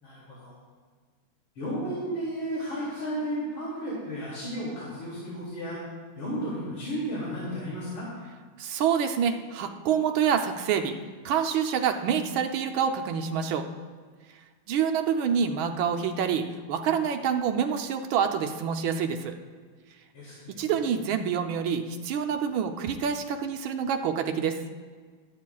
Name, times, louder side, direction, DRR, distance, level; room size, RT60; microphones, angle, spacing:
voice 1, 0.0-0.5 1.5-5.8 6.1-8.1 20.1-20.7, equal, 70° left, -8 dB, 3.3 m, -33 dB
voice 2, 8.6-10.9 11.2-13.6 14.7-19.4 20.5-24.6, right 7 dB, 75° right, 6 dB, 1.5 m, -27 dB
20.0 x 8.9 x 2.3 m, 1.6 s
omnidirectional pair, 2.3 m